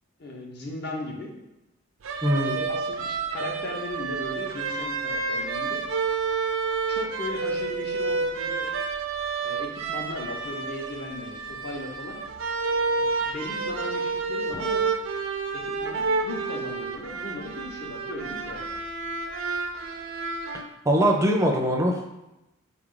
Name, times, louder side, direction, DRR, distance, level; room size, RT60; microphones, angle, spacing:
voice 1, 0.2-1.3 2.4-5.9 6.9-8.7 9.4-12.2 13.0-14.9 15.5-18.6, left 2 dB, 55° left, 0 dB, 0.7 m, -37 dB
sound 1, 2.0-20.6, right 4 dB, 75° right, 0.4 m, -30 dB
voice 2, 2.2-2.6 20.9-22.1, equal, 15° right, 1 dB, 0.4 m, -22 dB
4.0 x 2.4 x 3.7 m, 0.94 s
head